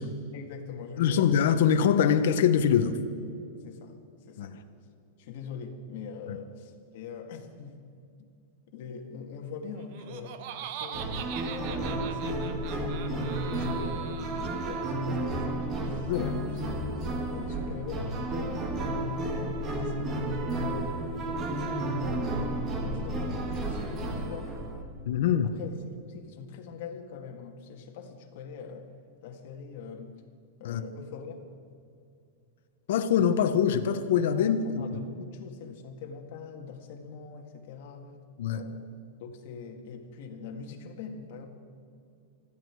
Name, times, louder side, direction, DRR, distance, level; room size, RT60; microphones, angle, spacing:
voice 1, 0.0-1.4 3.6-4.0 4.3-4.6 5.2-7.8 8.2-8.3 8.7-18.7 19.0-20.1 20.6-24.6 25.4-25.8 26.1-28.9 29.2-30.2 30.6-31.4 34.3-38.1 38.5-38.9 39.2-41.5, left 5 dB, 50° left, 2 dB, 2.1 m, -43 dB
voice 2, 1.0-3.0 4.4-4.5 16.1-16.4 25.1-25.5 30.6-30.8 32.9-34.6 38.4-38.6, left 8 dB, 65° left, 7 dB, 1.1 m, -23 dB
Laughter, 9.8-15.0, right 9 dB, 45° right, 1.0 m, -42 dB
sound 1, 10.9-24.8, right 1 dB, 20° right, 1.7 m, -32 dB
20.5 x 14.5 x 4.8 m, 2.5 s
supercardioid pair, 165°, 0 cm